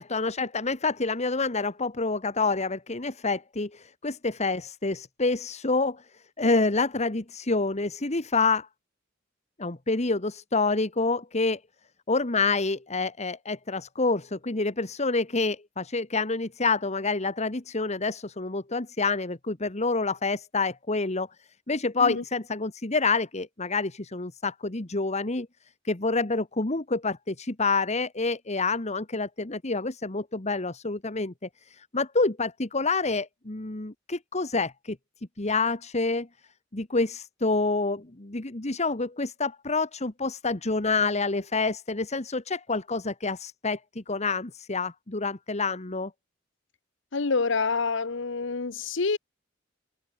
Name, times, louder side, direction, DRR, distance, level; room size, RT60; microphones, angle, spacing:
voice 1, 0.0-6.0 6.4-8.7 9.6-11.6 12.1-21.3 21.7-25.5 25.8-31.3 31.7-35.0 35.4-36.3 36.7-46.1, left 3 dB, 35° left, 1.5 m, -27 dB
voice 2, 47.1-49.2, left 4 dB, 65° left, 1.0 m, -27 dB
head